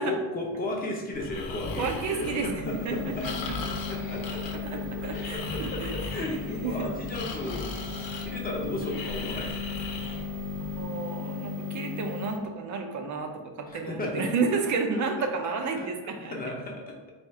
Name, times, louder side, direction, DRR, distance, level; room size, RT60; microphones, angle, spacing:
voice 1, 0.0-3.3 3.9-4.6 5.1-5.8 6.1-7.8 8.2-10.2 13.7-14.3 15.2-15.5 16.2-17.0, left 1 dB, 20° left, -1 dB, 0.7 m, -34 dB
Breathing, 1.1-10.8, left 4 dB, 75° left, 0.8 m, -38 dB
voice 2, 1.8-3.4 4.6-6.4 6.6-6.9 10.6-16.4, right 4 dB, 40° right, 4 dB, 0.5 m, -31 dB
sound 1, 2.6-12.4, left 4 dB, 75° right, 0.8 m, -37 dB
4.2 x 2.4 x 4.6 m, 1.1 s
cardioid pair, 170°, 45 cm